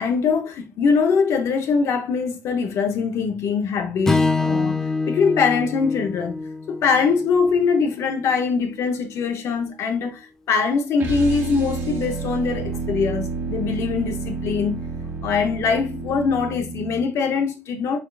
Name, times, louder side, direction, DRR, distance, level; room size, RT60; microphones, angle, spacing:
voice 1, 0.0-4.8 5.1-6.4 6.7-14.9 15.2-18.0, left 5 dB, 65° left, 0.7 m, -22 dB
Strum, 4.1-8.4, left 3 dB, 10° left, 0.4 m, -26 dB
sound 1, 11.0-17.1, right 4 dB, 50° right, 1.4 m, -30 dB
4.5 x 4.1 x 2.3 m
cardioid pair, 135°, 5 cm